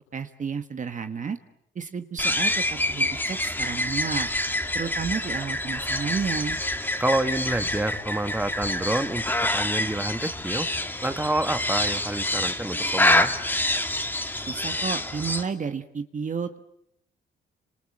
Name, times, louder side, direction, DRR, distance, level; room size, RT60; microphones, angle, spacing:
voice 1, 0.1-1.4 1.7-4.3 4.7-6.6 14.5-16.6, right 6 dB, 40° right, 8 dB, 1.4 m, -31 dB
sound 1, 2.2-15.4, left 1 dB, 10° left, 2.4 m, -27 dB
voice 2, 7.0-10.7 11.0-13.3, right 1 dB, 10° right, 8 dB, 1.9 m, -28 dB
28.0 x 26.0 x 7.4 m, 0.81 s
cardioid pair, 90°, 20 cm